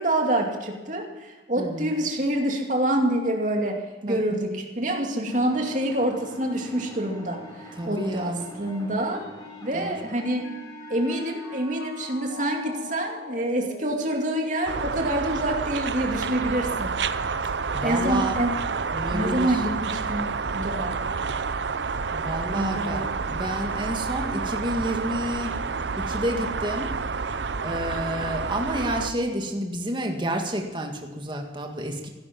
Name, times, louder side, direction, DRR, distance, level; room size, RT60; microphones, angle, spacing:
voice 1, 0.0-9.3 9.6-10.6 10.9-16.9 17.8-18.5 19.1-21.0 22.5-23.2, right 1 dB, 45° right, 2 dB, 2.5 m, -27 dB
voice 2, 1.6-1.9 4.1-4.2 7.8-8.4 9.7-10.0 17.7-18.4 18.9-19.6 22.1-25.6 25.9-26.9 27.6-32.1, right 1 dB, 25° right, 3 dB, 1.9 m, -30 dB
sound 1, 5.3-11.6, equal, 20° left, 3.6 m, -43 dB
Mallet percussion, 9.1-15.6, left 3 dB, 80° left, 2.2 m, -44 dB
sound 2, 14.7-29.1, right 5 dB, 80° right, 0.7 m, -29 dB
15.5 x 12.5 x 6.0 m, 1.2 s
head